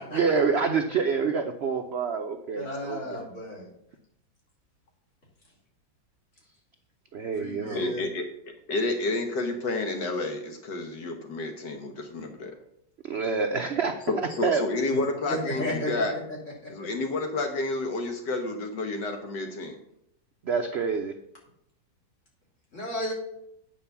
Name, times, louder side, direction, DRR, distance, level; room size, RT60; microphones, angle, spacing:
voice 1, 0.1-3.3 7.1-7.9 13.0-14.0 14.4-14.6 20.5-21.1, right 5 dB, 80° right, 6 dB, 0.5 m, -27 dB
voice 2, 2.5-3.7 7.4-8.0 14.9-15.0 15.3-15.9 22.7-23.1, left 1 dB, 40° left, -4 dB, 3.4 m, -33 dB
voice 3, 7.7-8.2 8.7-12.5 14.1-16.2 16.7-19.8, left 2 dB, 70° left, 5 dB, 1.7 m, -30 dB
8.9 x 5.2 x 6.9 m, 0.74 s
omnidirectional pair, 2.0 m